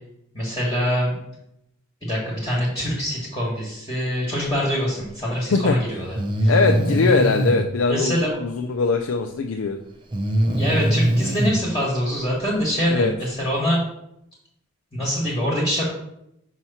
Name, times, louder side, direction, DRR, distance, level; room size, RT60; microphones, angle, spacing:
voice 1, 0.3-1.2 2.0-6.2 6.4-6.5 7.9-8.4 10.5-13.8 15.0-15.9, equal, 20° left, -6 dB, 1.3 m, -24 dB
Breathing, 5.3-5.4 6.1-7.6 10.1-11.6, right 1 dB, 20° right, 0.6 m, -21 dB
voice 2, 6.5-9.8 12.9-13.1, left 4 dB, 70° left, 4 dB, 0.4 m, -21 dB
5.6 x 3.0 x 5.5 m, 0.79 s
head